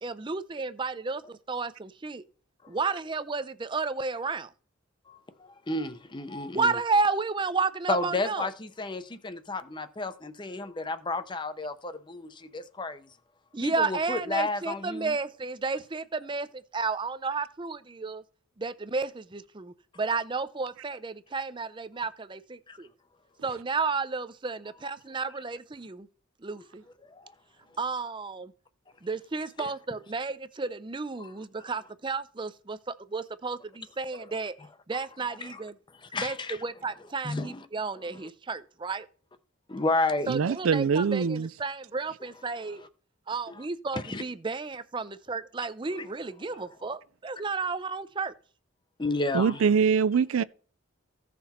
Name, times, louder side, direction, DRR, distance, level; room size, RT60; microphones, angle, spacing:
voice 1, 0.0-2.2 2.7-4.5 6.5-8.5 13.5-18.2 18.6-22.9 23.4-26.1 26.4-26.8 27.8-28.5 29.0-34.6 34.9-35.8 36.2-39.1 40.3-42.8 43.3-48.3, right 4 dB, 25° right, 0.5 m, -32 dB
voice 2, 5.1-6.7 7.9-13.1 13.6-15.1 22.7-22.8 27.1-27.3 29.6-29.7 31.2-31.3 35.4-35.6 36.1-36.6 37.2-37.6 39.7-40.3 43.9-44.2 46.0-46.1 49.0-49.6, left 2 dB, 20° left, 0.7 m, -32 dB
voice 3, 40.3-41.5 49.3-50.4, right 6 dB, 80° right, 0.4 m, -23 dB
15.0 x 5.9 x 4.2 m
head